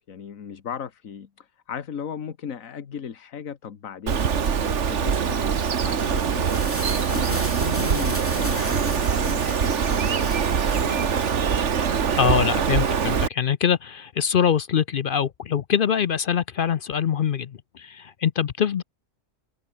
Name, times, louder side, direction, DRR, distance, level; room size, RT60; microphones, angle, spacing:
voice 1, 0.0-4.3 4.6-6.5 7.1-10.3 10.7-11.2, left 7 dB, 80° left, 1.7 m, -36 dB
Bird, 4.1-13.3, right 7 dB, 60° right, 1.6 m, -23 dB
sound 1, 6.4-11.4, equal, 10° left, 4.7 m, -37 dB
voice 2, 12.2-18.8, left 8 dB, 55° left, 0.6 m, -23 dB
omnidirectional pair, 1.4 m